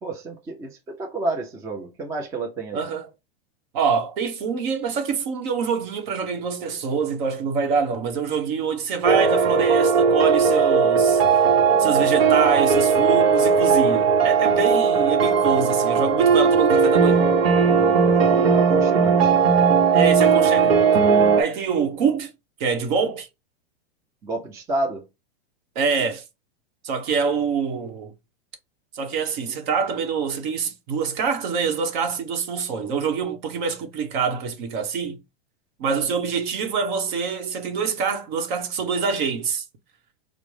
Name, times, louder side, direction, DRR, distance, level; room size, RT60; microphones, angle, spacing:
voice 1, 0.0-2.9 11.7-12.1 17.6-19.4 24.2-25.0 35.8-36.0, right 2 dB, 10° right, 0.4 m, -30 dB
voice 2, 2.7-3.1 3.7-11.4 11.8-17.2 19.9-20.9 21.4-22.3 22.6-23.3 25.7-26.2 26.8-28.1 28.9-35.2 35.8-39.6, right 6 dB, 55° right, 1.0 m, -25 dB
sound 1, 9.0-21.4, right 5 dB, 80° right, 0.8 m, -18 dB
4.9 x 2.0 x 3.2 m
supercardioid pair, 140°, 30 cm